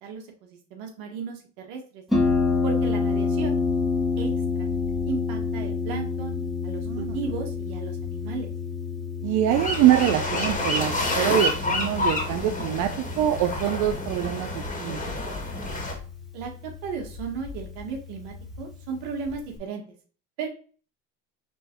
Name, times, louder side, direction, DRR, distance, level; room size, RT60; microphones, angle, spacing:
voice 1, 0.0-2.0 2.6-3.6 4.2-4.3 4.5-4.7 5.0-6.4 6.6-8.5 16.3-19.8 20.4-20.5, right 5 dB, 75° right, 3 dB, 1.4 m, -35 dB
Harp, 2.1-19.6, left 4 dB, ahead, 1.6 m, -29 dB
voice 2, 9.2-12.9 13.2-15.2, right 11 dB, 55° right, 7 dB, 0.5 m, -24 dB
sound 1, 9.5-15.9, left 1 dB, 20° left, 1.9 m, -29 dB
5.2 x 3.3 x 3.0 m, 0.41 s
supercardioid pair, 90°, 36 cm